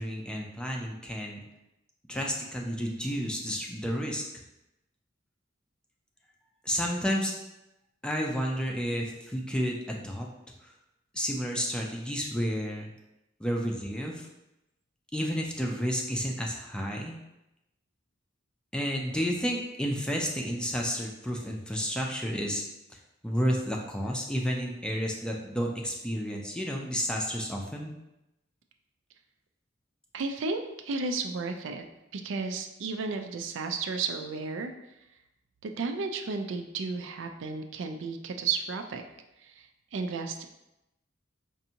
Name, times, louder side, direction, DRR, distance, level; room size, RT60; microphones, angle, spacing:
voice 1, 0.0-1.4 2.1-4.2 6.6-7.3 8.0-10.3 10.6-10.7 11.1-12.9 13.4-14.3 15.1-17.2 18.7-22.6 22.9-23.0 23.2-27.9, equal, 5° left, 0 dB, 0.4 m, -31 dB
voice 2, 30.1-31.8 32.1-34.7 35.6-39.0 39.4-39.7 39.9-40.4, right 4 dB, 75° right, 6 dB, 0.4 m, -33 dB
5.3 x 2.6 x 2.8 m, 0.91 s
head